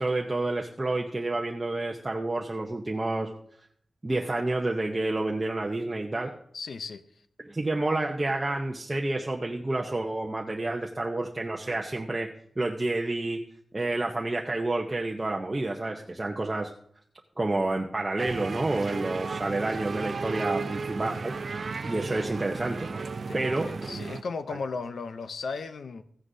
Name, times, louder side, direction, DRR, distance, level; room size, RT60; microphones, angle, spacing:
voice 1, 0.0-3.3 4.0-6.3 7.4-12.3 12.6-13.4 13.7-16.7 17.4-21.4 21.8-22.9 23.3-23.9 24.5-24.6, right 2 dB, 20° right, 0 dB, 0.8 m, -29 dB
voice 2, 6.5-7.0 23.3-26.0, left 4 dB, 75° left, 10 dB, 0.6 m, -36 dB
sound 1, 18.2-24.2, right 4 dB, 55° right, 0.5 m, -34 dB
15.5 x 9.7 x 2.7 m, 0.65 s
wide cardioid pair, 130°, 0 cm